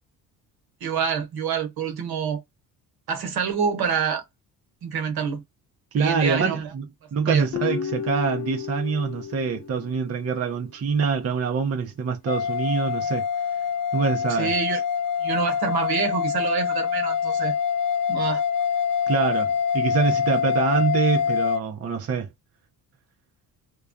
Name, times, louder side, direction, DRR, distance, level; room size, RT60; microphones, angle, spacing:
voice 1, 0.8-2.4 3.1-4.2 4.8-5.4 6.0-6.7 7.2-7.5 14.3-14.8 15.2-17.5 18.1-18.4, right 6 dB, 60° right, 1.1 m, -26 dB
voice 2, 5.9-6.8 7.1-13.2 13.9-14.5 19.1-22.3, right 5 dB, 35° right, 0.7 m, -25 dB
Guitar, 7.5-10.8, left 9 dB, 40° left, 0.7 m, -33 dB
sound 1, 12.3-21.6, left 7 dB, 85° left, 0.7 m, -25 dB
2.3 x 2.2 x 2.5 m
supercardioid pair, 70°, 41 cm